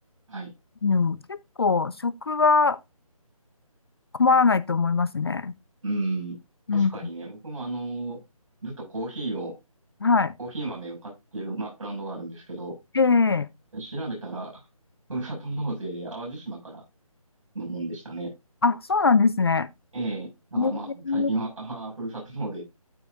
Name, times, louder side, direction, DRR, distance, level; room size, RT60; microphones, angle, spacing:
voice 1, 0.8-2.8 4.2-5.5 6.7-6.9 10.0-10.3 12.9-13.5 18.6-19.7 20.6-20.7 21.1-21.3, left 4 dB, 45° left, 0.5 m, -21 dB
voice 2, 5.8-6.3 6.7-8.2 8.6-9.6 10.4-12.8 13.7-14.7 15.1-16.8 17.5-18.3 19.9-22.6, right 2 dB, 55° right, 6.4 m, -33 dB
12.0 x 5.9 x 2.6 m
figure-of-eight pair, 165°, 19 cm